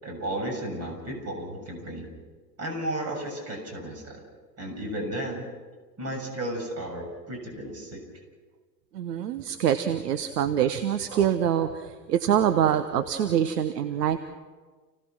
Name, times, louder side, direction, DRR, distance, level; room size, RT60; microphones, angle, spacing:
voice 1, 0.0-2.1 2.6-4.2 4.6-5.4 6.0-8.2, right 1 dB, 30° right, 2 dB, 7.1 m, -34 dB
voice 2, 8.9-14.2, right 9 dB, 70° right, 10 dB, 1.2 m, -25 dB
30.0 x 18.0 x 6.0 m, 1.4 s
figure-of-eight pair, 85°, 49 cm